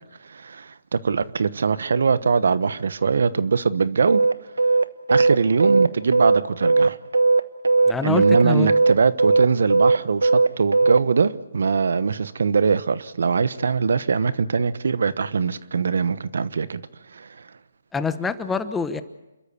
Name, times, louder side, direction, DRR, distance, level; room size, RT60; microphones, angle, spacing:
voice 1, 0.2-4.2 5.1-7.0 8.0-16.8 17.1-17.5, right 5 dB, 70° right, 16 dB, 1.1 m, -22 dB
sound 1, 4.1-11.0, right 3 dB, 90° right, 1.2 m, -17 dB
voice 2, 7.9-8.7 17.9-19.0, left 5 dB, 10° left, 11 dB, 1.0 m, -26 dB
28.5 x 13.5 x 8.3 m, 1.0 s
hypercardioid pair, 150°, 0 cm